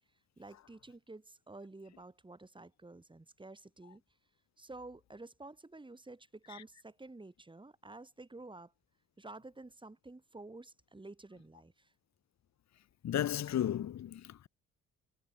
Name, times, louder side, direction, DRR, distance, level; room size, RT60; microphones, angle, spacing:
voice 1, 0.4-4.0 4.6-8.7 9.2-11.9, right 2 dB, 15° right, 7.2 m, -51 dB
voice 2, 13.0-14.5, left 11 dB, 65° left, 2.1 m, -34 dB
cardioid pair, 90°, 30 cm